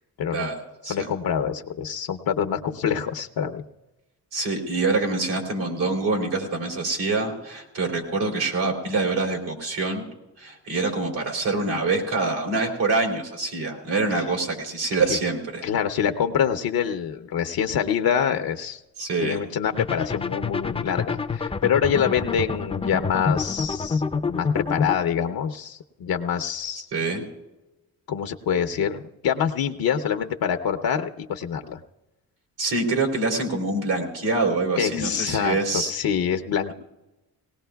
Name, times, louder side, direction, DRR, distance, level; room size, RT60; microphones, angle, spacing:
voice 1, 0.9-3.6 15.1-15.2 15.6-18.8 19.2-26.9 28.1-31.8 34.8-36.7, left 8 dB, 75° left, 7 dB, 0.8 m, -25 dB
voice 2, 4.3-10.1 10.4-15.7 19.0-19.4 26.9-27.2 32.6-35.9, right 3 dB, 85° right, 1 dB, 3.3 m, -25 dB
sound 1, 19.8-25.0, left 5 dB, 15° left, 0.4 m, -27 dB
19.5 x 18.5 x 2.3 m, 1.0 s
cardioid pair, 95°, 37 cm